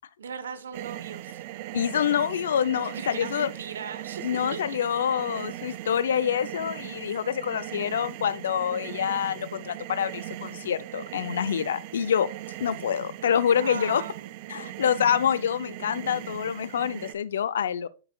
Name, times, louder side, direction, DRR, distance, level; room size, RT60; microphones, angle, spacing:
voice 1, 0.2-1.4 2.8-4.6 5.7-5.9 13.4-14.3, right 6 dB, 90° right, 0.9 m, -39 dB
sound 1, 0.7-17.1, right 15 dB, 50° right, 0.5 m, -39 dB
voice 2, 1.7-3.5 4.2-12.3 12.6-14.0 14.5-17.9, left 8 dB, 80° left, 0.5 m, -26 dB
13.0 x 4.4 x 2.3 m
hypercardioid pair, 135°, 0 cm